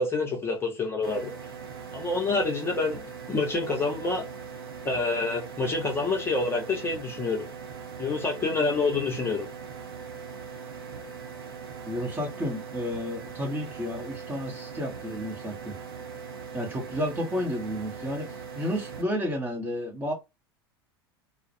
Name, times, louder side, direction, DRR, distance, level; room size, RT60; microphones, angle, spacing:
voice 1, 0.0-1.3 1.9-4.2 4.8-7.5 8.0-9.5, left 3 dB, 20° left, 0.8 m, -27 dB
sound 1, 1.0-19.0, right 6 dB, 65° right, 0.7 m, -41 dB
voice 2, 11.9-15.7 16.5-20.1, equal, 15° right, 0.8 m, -31 dB
2.3 x 2.0 x 2.7 m
figure-of-eight pair, 80°, 13 cm